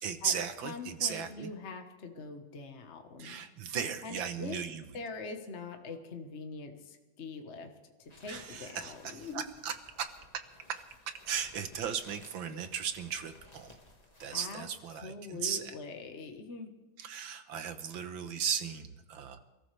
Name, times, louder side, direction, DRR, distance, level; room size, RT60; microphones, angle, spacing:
voice 1, 0.0-1.5 3.2-4.8 8.3-10.1 10.3-10.4 10.7-10.8 11.1-13.7 14.2-15.7 17.0-19.4, right 7 dB, 75° right, 9 dB, 1.8 m, -36 dB
voice 2, 0.6-3.4 4.0-4.6 4.9-7.7 8.0-9.5 12.5-12.6 14.3-14.6 14.9-16.7, left 4 dB, 40° left, 4 dB, 1.4 m, -43 dB
sound 1, 8.0-14.7, left 2 dB, 20° left, 1.7 m, -57 dB
28.5 x 13.5 x 3.4 m, 1.1 s
omnidirectional pair, 2.2 m